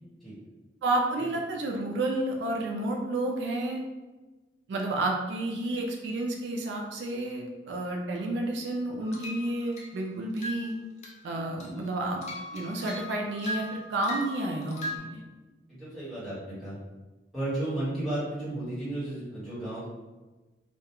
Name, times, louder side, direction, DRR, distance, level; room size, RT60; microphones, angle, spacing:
voice 1, 0.8-3.8 4.7-10.7 11.2-12.2 12.5-15.2, right 2 dB, 75° right, 1 dB, 0.3 m, -30 dB
sound 1, 9.0-10.0 10.4-10.7 11.0-11.3 11.6-15.0, left 1 dB, 35° left, 0.4 m, -39 dB
voice 2, 15.7-16.8 17.3-19.9, right 1 dB, ahead, -12 dB, 1.1 m, -33 dB
2.2 x 2.2 x 2.9 m, 1.2 s
head